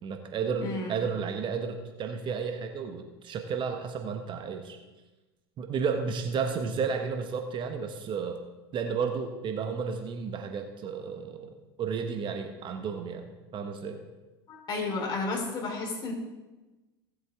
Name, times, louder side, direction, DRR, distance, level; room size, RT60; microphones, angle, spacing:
voice 1, 0.0-4.8 5.6-8.4 8.7-14.0, right 6 dB, 40° right, 5 dB, 1.2 m, -32 dB
voice 2, 0.6-1.0 14.5-16.1, left 3 dB, 35° left, -2 dB, 4.1 m, -32 dB
17.0 x 7.8 x 3.6 m, 1.1 s
hypercardioid pair, 85°, 13 cm